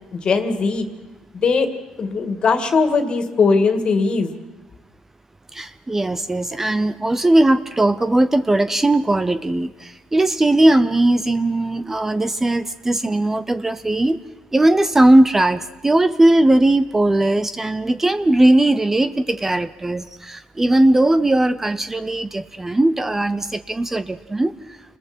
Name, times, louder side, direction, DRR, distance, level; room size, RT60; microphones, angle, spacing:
voice 1, 0.2-0.9 1.4-1.7 2.0-4.3, left 4 dB, 45° left, 7 dB, 2.2 m, -19 dB
voice 2, 5.5-14.2 14.5-24.5, right 1 dB, 15° right, 12 dB, 0.6 m, -18 dB
29.5 x 20.5 x 4.5 m, 1.1 s
cardioid pair, 105°, 2 cm